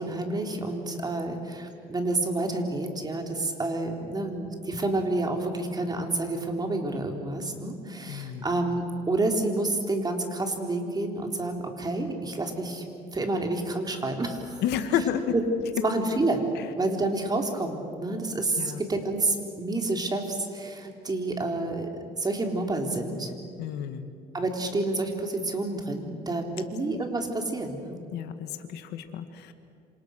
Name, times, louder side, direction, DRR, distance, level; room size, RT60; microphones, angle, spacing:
voice 1, 0.0-12.8 13.1-14.6 15.3-15.4 15.8-16.4 16.8-21.9 22.2-23.3 24.3-28.0, right 2 dB, 25° right, 4 dB, 3.8 m, -29 dB
voice 2, 8.0-8.4 14.6-15.3 16.6-16.7 18.6-18.8 23.6-24.1 28.1-29.5, left 9 dB, 80° left, 8 dB, 2.0 m, -30 dB
27.5 x 26.5 x 6.6 m, 2.5 s
cardioid pair, 110°, 17 cm